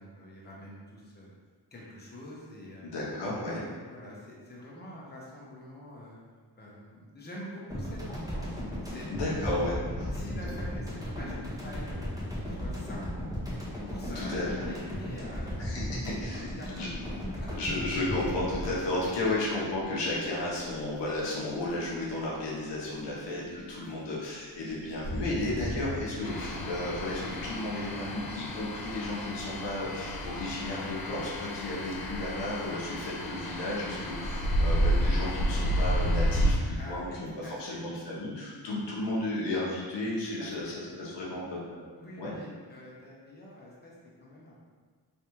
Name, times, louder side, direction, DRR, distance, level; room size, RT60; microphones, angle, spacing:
voice 1, 0.0-1.3 1.7-2.9 3.3-6.2 6.6-9.1 10.1-13.5 13.9-15.8 16.4-17.0 17.4-17.6 23.0-23.3 33.9-34.1 36.8-37.8 40.4-41.1 42.0-43.9 44.2-44.5, left 1 dB, 25° left, -5 dB, 1.1 m, -46 dB
voice 2, 2.8-3.6 9.1-10.1 14.1-14.5 15.6-16.4 16.8-16.9 17.6-41.8 42.2-42.3, left 2 dB, 85° left, -5 dB, 0.9 m, -33 dB
sound 1, 7.7-20.2, equal, 10° right, 1.3 m, -36 dB
sound 2, 13.2-29.6, equal, 80° right, 1.4 m, -44 dB
sound 3, 26.2-36.5, equal, 60° left, 0.8 m, -31 dB
3.3 x 3.2 x 3.0 m, 1.5 s
cardioid pair, 60°, 42 cm